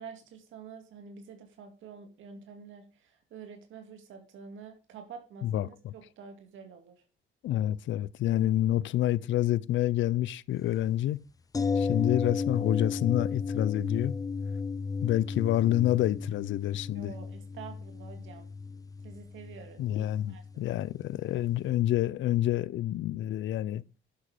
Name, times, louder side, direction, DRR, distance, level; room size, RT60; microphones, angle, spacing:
voice 1, 0.0-6.9 16.9-18.5 19.0-20.8, right 6 dB, 80° right, 2.2 m, -48 dB
voice 2, 5.4-5.9 7.4-11.2 11.8-14.2 15.0-17.1 19.8-23.8, left 13 dB, 75° left, 0.6 m, -28 dB
sound 1, 11.5-21.4 21.7-21.8, left 5 dB, 20° left, 0.4 m, -34 dB
10.0 x 7.6 x 5.0 m
cardioid pair, 90°, 20 cm